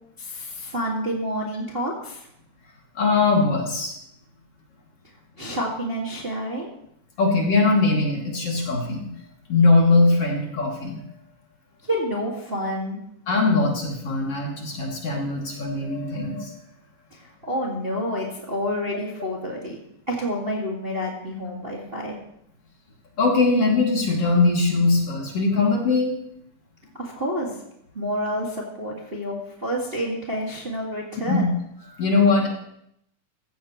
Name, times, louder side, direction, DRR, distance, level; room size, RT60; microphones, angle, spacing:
voice 1, 0.2-2.3 5.4-6.7 11.8-13.0 17.1-19.8 20.1-22.2 27.0-27.6 27.9-31.5, equal, 20° right, -3 dB, 1.9 m, -29 dB
voice 2, 3.0-3.9 7.2-9.1 9.5-11.0 13.3-16.6 23.2-26.1 31.3-31.5 32.0-32.5, left 3 dB, 50° left, -2 dB, 3.5 m, -21 dB
15.5 x 15.5 x 3.1 m, 0.76 s
omnidirectional pair, 3.5 m